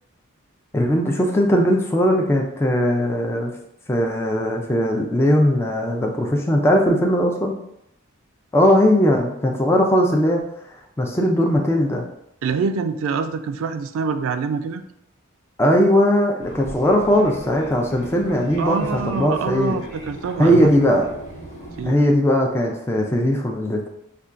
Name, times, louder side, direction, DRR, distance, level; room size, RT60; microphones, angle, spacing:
voice 1, 0.7-3.5 3.9-7.5 8.5-10.4 11.0-12.0 15.6-19.8 20.4-21.1 21.9-23.8, equal, 10° left, 0 dB, 0.3 m, -19 dB
voice 2, 12.4-14.8 18.6-20.7 21.8-22.0, right 5 dB, 70° right, 10 dB, 0.3 m, -25 dB
Fixed-wing aircraft airplane, 16.4-22.0, right 1 dB, 80° left, 1.3 m, -38 dB
5.4 x 2.2 x 2.4 m, 0.78 s
head